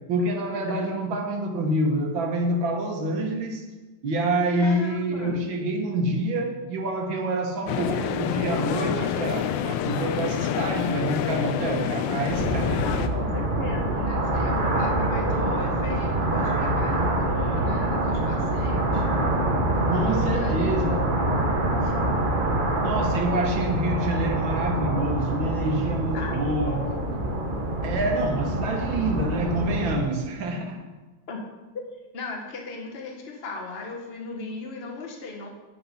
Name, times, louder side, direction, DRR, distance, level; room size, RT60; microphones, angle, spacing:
voice 1, 0.1-3.7 4.0-12.9 19.9-21.0 22.8-26.8 27.1-27.2 27.8-30.8, right 1 dB, 70° right, 3 dB, 1.9 m, -27 dB
voice 2, 4.6-5.4 12.8-19.0 20.0-21.9 26.1-27.6 31.3-31.4 32.1-35.5, left 3 dB, 35° left, 1 dB, 1.4 m, -36 dB
sound 1, 7.7-13.1, left 9 dB, 75° left, 1.2 m, -27 dB
sound 2, 12.3-30.0, right 1 dB, 45° right, 0.6 m, -25 dB
9.5 x 5.8 x 5.7 m, 1.2 s
omnidirectional pair, 2.3 m